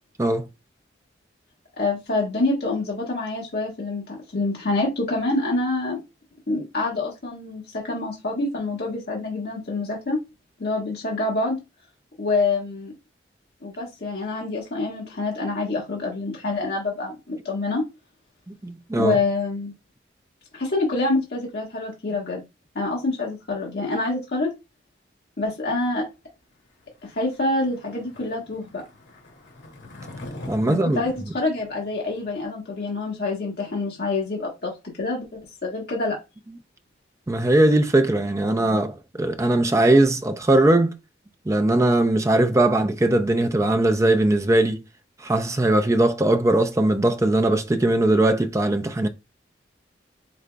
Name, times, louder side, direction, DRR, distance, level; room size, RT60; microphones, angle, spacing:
voice 1, 1.8-6.0 6.5-10.2 10.6-11.6 12.2-12.9 13.6-17.8 19.0-19.7 20.5-22.4 22.7-24.5 25.4-26.1 27.0-28.8 30.7-34.7 35.0-36.2, left 2 dB, 55° left, 1.3 m, -26 dB
voice 2, 18.5-19.2 30.5-31.0 37.3-41.0 41.5-44.8 45.2-49.1, right 1 dB, 15° right, 0.4 m, -20 dB
Skateboard, 27.0-32.4, left 1 dB, 80° left, 2.1 m, -43 dB
4.9 x 3.7 x 2.2 m
head